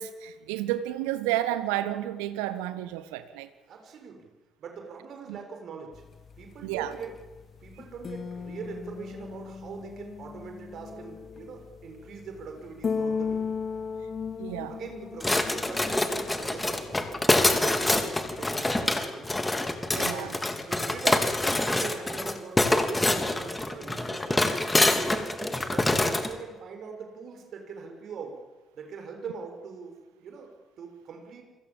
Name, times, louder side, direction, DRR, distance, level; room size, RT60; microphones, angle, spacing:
voice 1, 0.0-3.5 5.3-5.4 6.6-7.0 14.4-14.8 19.9-20.4, right 13 dB, 70° right, 1.6 m, -31 dB
voice 2, 3.7-4.3 4.6-6.0 6.4-7.1 7.6-13.4 14.7-19.4 20.0-20.3 20.7-24.5 24.9-28.4 28.7-31.4, right 5 dB, 55° right, 6.8 m, -42 dB
sound 1, 5.9-18.5, left 5 dB, 40° left, 1.6 m, -37 dB
sound 2, 15.2-26.3, left 2 dB, 15° left, 3.5 m, -26 dB
30.0 x 25.0 x 7.6 m
figure-of-eight pair, 45°, 0 cm